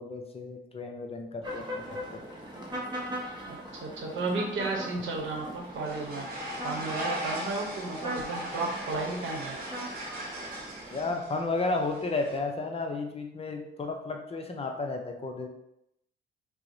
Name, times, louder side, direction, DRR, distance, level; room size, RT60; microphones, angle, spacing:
voice 1, 0.0-2.2 10.9-15.5, left 3 dB, 30° left, 3 dB, 0.5 m, -33 dB
sound 1, 1.4-11.1, equal, 20° right, 0.8 m, -40 dB
voice 2, 3.5-6.3 6.6-9.6, right 3 dB, 75° right, 0 dB, 0.8 m, -33 dB
sound 2, 5.0-12.4, equal, 50° right, 1.0 m, -39 dB
4.4 x 2.0 x 2.6 m, 0.80 s
cardioid pair, 90°, 20 cm